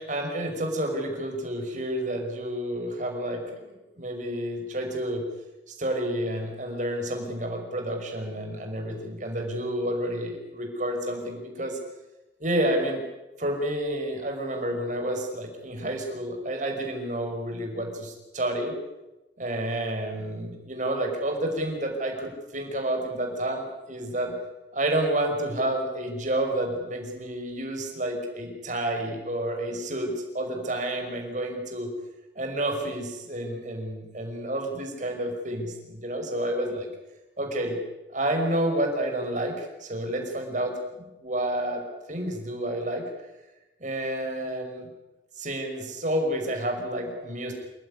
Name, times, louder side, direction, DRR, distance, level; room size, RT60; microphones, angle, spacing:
voice 1, 0.0-5.2 5.7-11.8 12.4-13.0 13.4-18.8 19.4-24.3 24.7-31.9 32.4-36.9 37.4-37.8 38.1-41.8 42.1-43.1 43.8-44.9 45.4-47.5, right 1 dB, 45° right, 3 dB, 5.6 m, -30 dB
28.0 x 16.0 x 9.8 m, 1.0 s
head